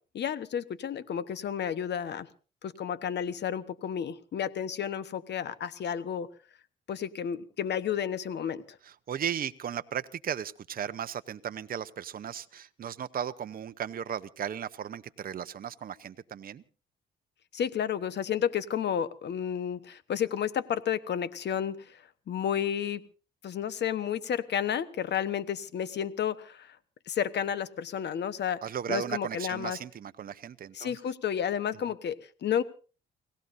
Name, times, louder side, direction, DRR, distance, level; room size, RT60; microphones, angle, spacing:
voice 1, 0.1-2.3 2.6-6.3 6.9-8.8 17.5-22.0 22.3-23.0 23.4-26.8 27.1-28.6 28.9-29.8 30.7-32.6, left 8 dB, 60° left, 14 dB, 1.1 m, -31 dB
voice 2, 8.8-16.6 28.6-31.0, right 9 dB, 45° right, 11 dB, 0.8 m, -36 dB
30.0 x 17.5 x 2.7 m, 0.37 s
cardioid pair, 90°, 20 cm